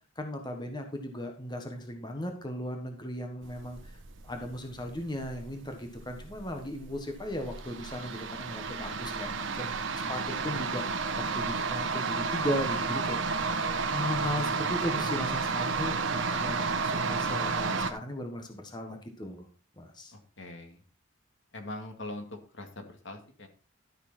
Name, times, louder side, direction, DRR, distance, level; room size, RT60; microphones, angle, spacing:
voice 1, 0.1-4.0 4.2-9.7 10.1-10.8 11.2-13.2 13.4-19.5 19.8-20.1, left 1 dB, 20° left, 4 dB, 1.5 m, -37 dB
sound 1, 3.4-17.9, right 4 dB, 65° right, 1.2 m, -32 dB
voice 2, 20.1-20.8 21.5-23.5, left 2 dB, 65° left, 5 dB, 2.2 m, -42 dB
12.5 x 6.7 x 4.4 m, 0.39 s
head